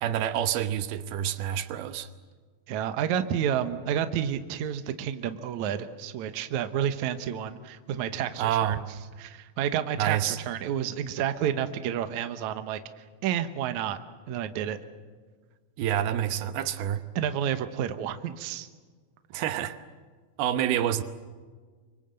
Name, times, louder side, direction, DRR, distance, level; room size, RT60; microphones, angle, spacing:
voice 1, 0.0-2.1 8.4-8.8 10.0-10.4 15.8-17.0 19.3-19.8 20.4-21.0, right 11 dB, 85° right, 10 dB, 3.0 m, -27 dB
voice 2, 2.7-8.8 9.2-14.0 14.3-14.8 17.2-18.7, right 9 dB, 65° right, 9 dB, 2.2 m, -30 dB
27.0 x 24.5 x 7.7 m, 1.5 s
omnidirectional pair, 4.3 m